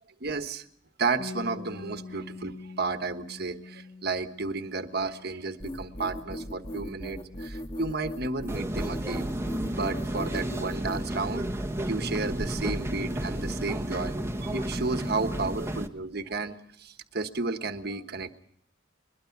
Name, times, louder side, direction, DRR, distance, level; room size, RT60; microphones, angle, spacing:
voice 1, 0.2-0.6 1.0-9.3 9.7-14.1 14.4-18.3, right 3 dB, 55° right, 9 dB, 1.4 m, -32 dB
Bass guitar, 1.2-7.4, left 3 dB, 50° left, 0.8 m, -45 dB
sound 1, 5.6-11.1, equal, 25° left, 1.5 m, -38 dB
sound 2, 8.5-15.9, right 1 dB, 15° right, 1.2 m, -32 dB
22.0 x 22.0 x 6.0 m, 0.66 s
head